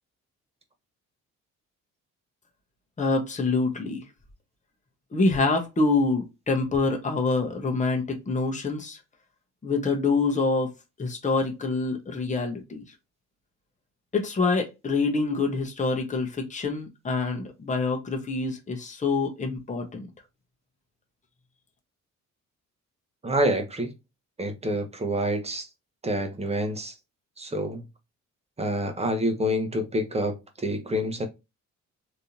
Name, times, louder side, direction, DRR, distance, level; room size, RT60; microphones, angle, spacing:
voice 1, 3.0-4.0 5.1-9.0 9.6-10.7 11.0-12.8 14.1-20.1, left 3 dB, 25° left, 1.1 m, -26 dB
voice 2, 23.2-23.9 24.4-25.7 26.0-26.9 27.4-27.8 28.6-31.3, equal, 20° right, 1.0 m, -27 dB
3.4 x 2.9 x 2.7 m
cardioid pair, 90°, 30 cm